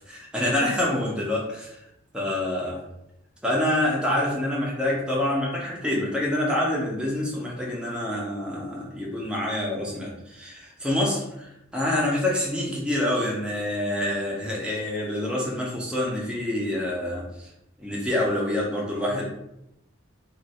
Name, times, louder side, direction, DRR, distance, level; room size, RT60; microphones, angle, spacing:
voice 1, 0.1-1.8 2.1-2.8 3.4-17.5 17.8-19.2, left 1 dB, 5° right, -4 dB, 0.7 m, -27 dB
2.6 x 2.5 x 4.1 m, 0.83 s
head